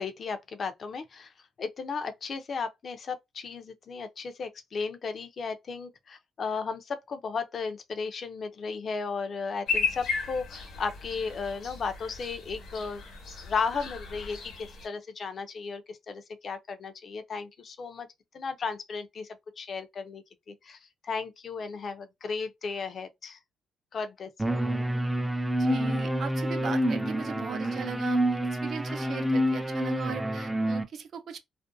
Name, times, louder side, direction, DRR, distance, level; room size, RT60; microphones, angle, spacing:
voice 1, 0.0-1.3 1.6-13.0 13.4-18.1 18.3-19.3 19.6-23.4 23.9-24.5, left 5 dB, 50° left, 0.5 m, -35 dB
sound 1, 9.7-14.9, left 5 dB, 70° left, 1.1 m, -35 dB
sound 2, 24.4-30.8, equal, 10° right, 0.4 m, -28 dB
voice 2, 25.6-31.4, right 7 dB, 60° right, 0.5 m, -38 dB
2.4 x 2.1 x 2.5 m
cardioid pair, 90°, 0 cm